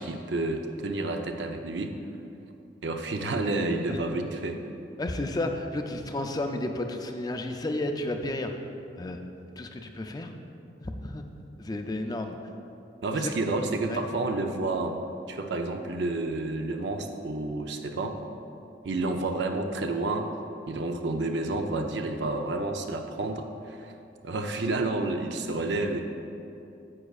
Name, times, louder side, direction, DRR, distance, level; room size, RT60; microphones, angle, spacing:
voice 1, 0.0-2.0 2.8-4.6 13.0-14.9 15.3-18.2 18.8-20.3 20.7-23.9 24.2-26.0, right 2 dB, 70° right, 5 dB, 0.6 m, -30 dB
voice 2, 5.0-8.5 9.0-9.2 9.6-10.3 10.8-11.3 11.6-12.4 13.1-13.3 13.9-14.0, left 1 dB, 20° left, 5 dB, 0.4 m, -32 dB
9.7 x 7.9 x 2.4 m, 2.8 s
head